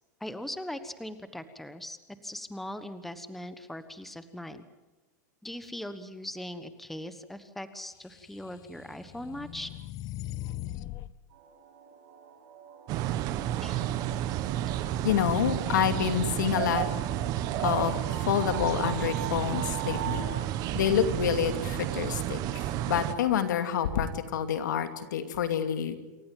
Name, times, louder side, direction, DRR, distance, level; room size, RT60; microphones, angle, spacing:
voice 1, 0.2-2.0 2.2-4.6 5.4-9.7 13.6-13.9, left 1 dB, ahead, 11 dB, 1.2 m, -40 dB
sound 1, 8.2-11.1, left 14 dB, 35° left, 0.8 m, -40 dB
sound 2, 11.3-20.3, right 7 dB, 70° right, 7.8 m, -43 dB
sound 3, 12.9-23.1, right 12 dB, 40° right, 1.5 m, -31 dB
voice 2, 15.0-16.8 17.6-18.0 18.3-20.2 20.7-25.9, left 9 dB, 80° left, 8 dB, 2.6 m, -28 dB
28.0 x 15.0 x 9.2 m, 1.1 s
supercardioid pair, 135°, 10 cm